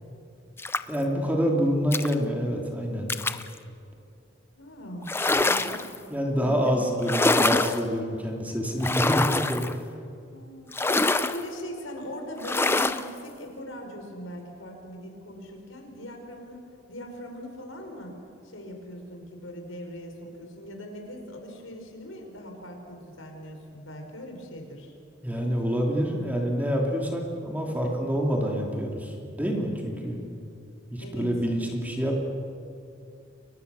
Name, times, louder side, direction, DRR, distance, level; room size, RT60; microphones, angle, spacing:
sound 1, 0.6-1.0 1.9-2.1 3.1-3.5 5.0-6.0 7.0-7.8 8.8-9.7 10.7-11.4 12.4-13.1, left 2 dB, 10° left, 0.6 m, -25 dB
voice 1, 0.9-3.1 6.1-9.8 25.2-30.2 30.9-32.2, equal, 10° right, 0 dB, 3.0 m, -27 dB
voice 2, 4.6-5.9 6.3-6.7 7.0-7.1 10.3-18.2 18.4-24.9 31.0-31.3, equal, 80° left, 3 dB, 5.1 m, -40 dB
30.0 x 23.0 x 7.0 m, 2.5 s
head